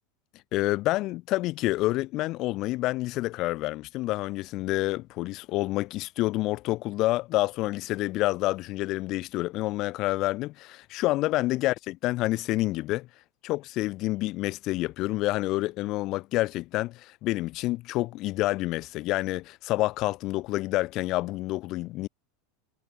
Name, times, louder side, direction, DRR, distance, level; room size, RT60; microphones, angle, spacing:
voice 1, 0.5-13.1 13.4-22.1, left 18 dB, 50° left, 0.5 m, -28 dB
hypercardioid pair, 110°, 0 cm